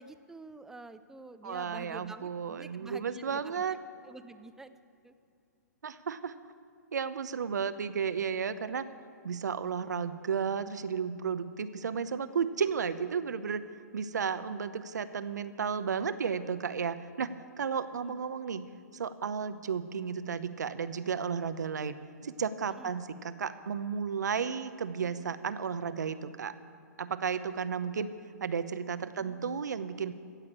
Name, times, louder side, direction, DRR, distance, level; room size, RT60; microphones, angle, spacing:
voice 1, 0.0-3.6 4.0-4.7 5.0-5.2 18.0-18.2 22.7-22.9 29.2-29.4, right 2 dB, 5° right, 11 dB, 0.5 m, -48 dB
voice 2, 1.4-3.8 5.8-6.3 6.9-8.8 9.2-13.6 13.9-17.3 17.6-18.6 18.9-22.0 22.2-26.5 27.0-28.1 28.4-30.1, right 6 dB, 75° right, 13 dB, 0.7 m, -33 dB
16.0 x 6.6 x 8.5 m, 2.4 s
hypercardioid pair, 125°, 9 cm